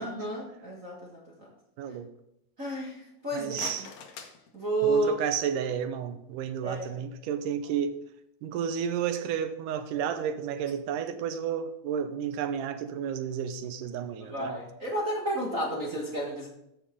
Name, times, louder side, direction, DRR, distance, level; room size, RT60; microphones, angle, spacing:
voice 1, 0.0-1.5 2.6-3.9 4.5-5.1 6.6-6.9 14.2-16.5, right 2 dB, 45° right, 1.1 m, -31 dB
voice 2, 1.8-2.1 3.3-3.9 4.9-8.0 8.4-14.5, right 8 dB, 80° right, 2.3 m, -31 dB
sound 1, 3.2-5.3, left 6 dB, 65° left, 2.1 m, -45 dB
14.5 x 5.9 x 3.7 m
omnidirectional pair, 3.9 m